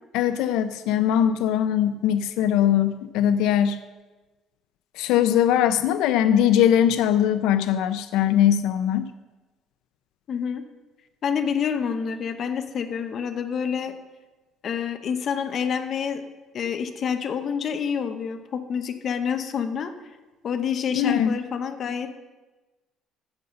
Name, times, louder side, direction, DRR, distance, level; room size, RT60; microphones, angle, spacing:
voice 1, 0.1-3.8 5.0-9.1 20.9-21.3, left 10 dB, 85° left, 11 dB, 0.5 m, -21 dB
voice 2, 10.3-10.6 11.2-13.9 14.6-16.2 16.5-19.9 20.4-22.1, left 7 dB, 40° left, 8 dB, 0.8 m, -27 dB
15.0 x 5.4 x 6.6 m, 1.2 s
cardioid pair, 165°, 0 cm